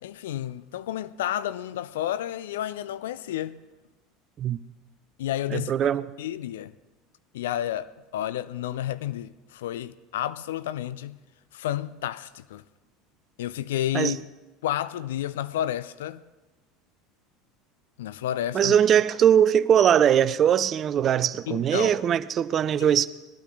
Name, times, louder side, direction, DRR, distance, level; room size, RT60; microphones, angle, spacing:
voice 1, 0.0-3.6 5.2-5.7 6.2-6.7 7.3-11.2 11.5-12.6 13.4-14.2 14.6-16.2 18.0-18.8 21.5-22.0 22.8-23.1, left 12 dB, 65° left, 0.4 m, -31 dB
voice 2, 5.5-6.0 13.9-14.1 18.5-23.1, right 9 dB, 40° right, 0.5 m, -21 dB
19.5 x 12.5 x 4.0 m
figure-of-eight pair, 70°, 0 cm